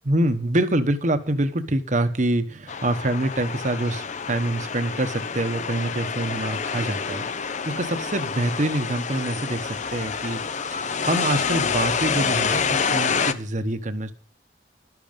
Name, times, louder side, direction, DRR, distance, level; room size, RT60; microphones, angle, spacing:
voice 1, 0.0-10.4 10.7-14.1, right 1 dB, 45° right, 9 dB, 1.1 m, -25 dB
sound 1, 2.7-13.3, left 5 dB, 40° left, 0.7 m, -27 dB
11.5 x 11.0 x 5.2 m, 0.43 s
head